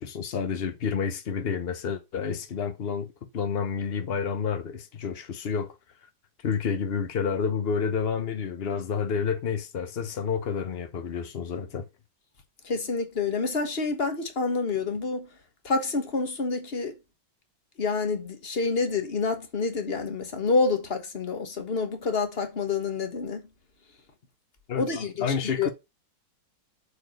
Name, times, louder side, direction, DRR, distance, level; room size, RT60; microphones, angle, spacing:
voice 1, 0.0-5.7 6.4-11.9 24.7-25.7, left 6 dB, 65° left, 0.5 m, -29 dB
voice 2, 12.6-15.3 15.6-16.9 17.8-23.4 24.7-25.3 25.6-25.7, left 4 dB, 35° left, 1.4 m, -28 dB
7.1 x 4.3 x 6.4 m
omnidirectional pair, 2.1 m